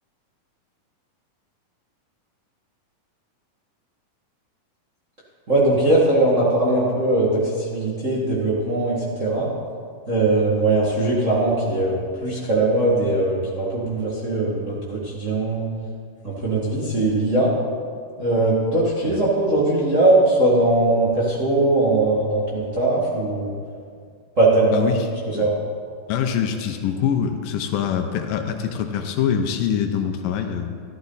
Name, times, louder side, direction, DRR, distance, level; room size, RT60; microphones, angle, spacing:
voice 1, 5.5-9.5 10.1-15.7 16.2-17.5 18.2-23.5 24.4-24.9 25.3-25.5, right 2 dB, 30° right, -7 dB, 1.5 m, -20 dB
voice 2, 24.7-25.1 25.3-25.5 26.1-30.7, left 8 dB, 80° left, 6 dB, 2.3 m, -24 dB
13.5 x 13.0 x 4.0 m, 2.2 s
omnidirectional pair, 4.0 m